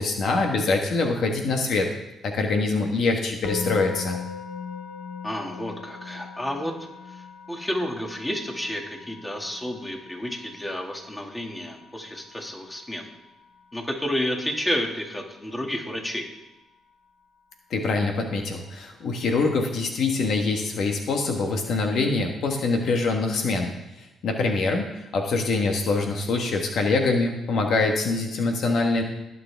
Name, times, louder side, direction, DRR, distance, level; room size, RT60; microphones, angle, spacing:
voice 1, 0.0-1.9 2.2-4.2 17.7-23.7 24.2-24.9 25.1-29.0, left 3 dB, 65° left, 2 dB, 1.3 m, -24 dB
Musical instrument, 3.4-14.5, left 6 dB, 80° left, 0.9 m, -40 dB
voice 2, 5.2-6.7 7.1-13.1 13.7-16.3, equal, 10° left, 2 dB, 2.1 m, -31 dB
19.0 x 6.9 x 3.5 m, 0.99 s
cardioid pair, 90°, 0 cm